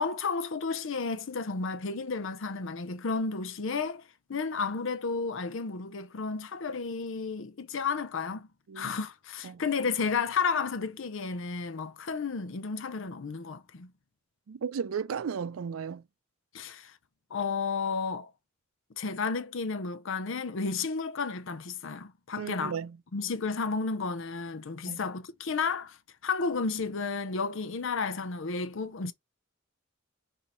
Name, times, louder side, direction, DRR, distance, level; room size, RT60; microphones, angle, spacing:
voice 1, 0.0-4.0 4.3-8.5 8.8-13.9 16.5-16.9 17.3-18.3 19.0-22.7 23.1-26.0 26.2-29.1, left 4 dB, 70° left, 0.6 m, -32 dB
voice 2, 14.5-16.0 22.4-23.0 24.9-25.0, right 6 dB, 85° right, 0.4 m, -35 dB
5.9 x 2.8 x 3.0 m
head